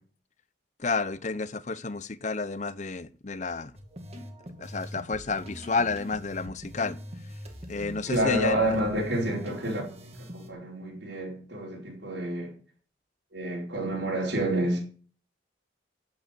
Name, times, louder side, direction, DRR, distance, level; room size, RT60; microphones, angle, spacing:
voice 1, 0.8-3.7 4.6-7.0 7.7-8.7, left 4 dB, 40° left, 0.7 m, -30 dB
sound 1, 3.8-10.5, equal, 35° right, 2.5 m, -43 dB
voice 2, 8.1-12.5 13.3-14.8, right 1 dB, 70° right, 5.1 m, -29 dB
10.5 x 9.1 x 9.3 m
head